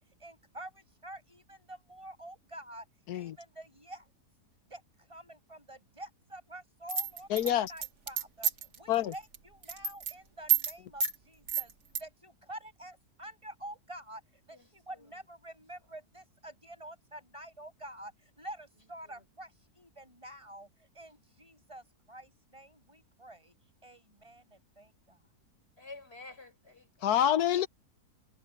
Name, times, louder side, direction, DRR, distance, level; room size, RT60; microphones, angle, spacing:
voice 1, 0.0-2.9 3.1-4.1 4.7-11.7 12.0-23.5 23.8-25.2, right 1 dB, 20° right, 7.2 m, -48 dB
sound 1, 6.9-8.8 9.1-9.4 9.6-10.1 10.5-10.7 11.0-11.2 11.5-12.0, right 9 dB, 80° right, 2.6 m, -29 dB
voice 2, 7.3-7.7 8.9-9.1 27.0-27.7, left 11 dB, 75° left, 1.3 m, -27 dB
voice 3, 14.5-15.1 19.0-19.2 25.8-27.1, left 3 dB, 40° left, 5.2 m, -51 dB
omnidirectional pair, 1.7 m